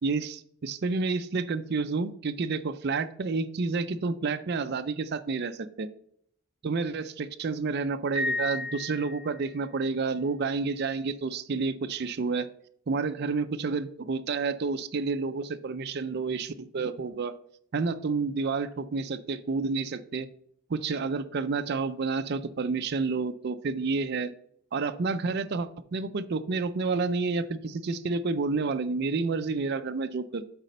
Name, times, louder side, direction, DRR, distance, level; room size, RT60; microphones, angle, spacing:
voice 1, 0.0-0.4 0.6-5.9 6.6-12.5 12.9-17.4 17.7-20.3 20.7-24.3 24.7-30.4, right 4 dB, 45° right, 9 dB, 0.4 m, -29 dB
Piano, 8.2-9.6, left 2 dB, 30° left, 1.8 m, -33 dB
8.0 x 4.1 x 5.4 m, 0.67 s
head